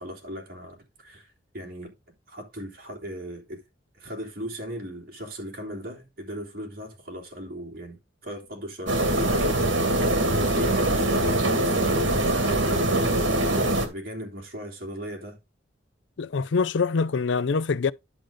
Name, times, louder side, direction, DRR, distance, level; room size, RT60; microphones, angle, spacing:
voice 1, 0.0-1.9 2.3-3.6 4.0-9.5 9.8-15.4, equal, 55° right, 3.1 m, -38 dB
sound 1, 8.9-13.9, right 1 dB, 75° right, 2.1 m, -23 dB
voice 2, 16.2-17.9, left 4 dB, 70° left, 0.5 m, -24 dB
10.5 x 4.9 x 3.8 m
head